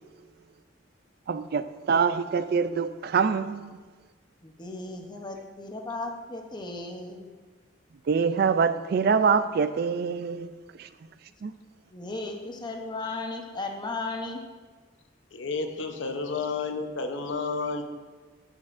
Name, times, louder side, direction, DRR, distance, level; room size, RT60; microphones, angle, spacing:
voice 1, 1.3-3.8 8.1-10.5 10.8-10.9 11.4-11.5, right 5 dB, 55° right, 12 dB, 0.3 m, -25 dB
voice 2, 4.4-7.3 11.9-14.4, left 2 dB, 25° left, 3 dB, 0.8 m, -35 dB
voice 3, 15.3-17.8, left 4 dB, 80° left, 5 dB, 0.8 m, -31 dB
12.5 x 6.3 x 2.5 m, 1.4 s
head